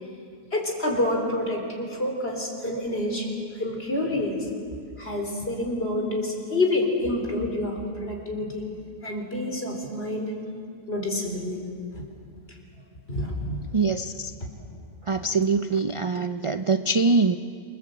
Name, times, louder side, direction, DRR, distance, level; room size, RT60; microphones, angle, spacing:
voice 1, 0.5-3.3 3.6-4.5 5.0-8.7 9.0-10.4 10.9-11.6 11.9-12.0 13.1-13.6 14.4-14.5, left 1 dB, 45° left, 1 dB, 4.2 m, -28 dB
voice 2, 13.7-14.3 15.0-17.4, right 3 dB, 55° right, 8 dB, 0.3 m, -23 dB
27.5 x 21.0 x 7.9 m, 2.3 s
omnidirectional pair, 1.5 m